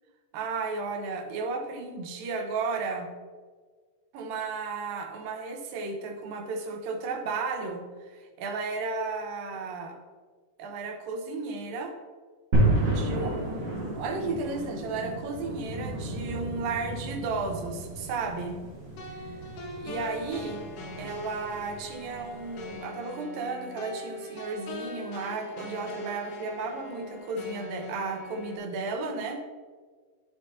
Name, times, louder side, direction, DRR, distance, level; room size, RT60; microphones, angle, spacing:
voice 1, 0.3-3.1 4.1-10.0 10.6-11.9 12.8-18.6 19.8-20.6 21.0-29.4, right 4 dB, 85° right, 4 dB, 2.6 m, -34 dB
sound 1, 12.5-22.8, right 1 dB, 40° right, 0.9 m, -32 dB
sound 2, 19.0-28.6, left 1 dB, 80° left, 2.4 m, -42 dB
11.5 x 5.4 x 2.8 m, 1.5 s
omnidirectional pair, 3.9 m